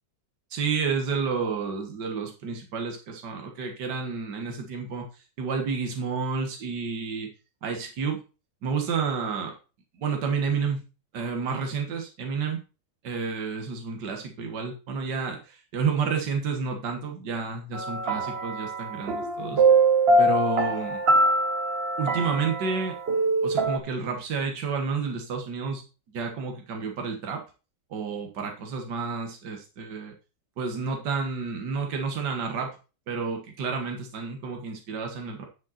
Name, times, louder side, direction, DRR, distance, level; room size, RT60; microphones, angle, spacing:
voice 1, 0.5-5.1 5.4-7.3 7.6-8.2 8.6-9.6 10.0-10.8 11.1-12.6 13.0-19.6 20.2-21.0 22.0-23.0 23.4-25.8 26.1-27.4 27.9-30.1 30.6-32.8 33.1-35.4, right 5 dB, 70° right, 3 dB, 2.0 m, -30 dB
sound 1, 17.7-23.8, right 2 dB, 40° right, 1.1 m, -23 dB
10.5 x 5.3 x 4.2 m, 0.32 s
omnidirectional pair, 1.9 m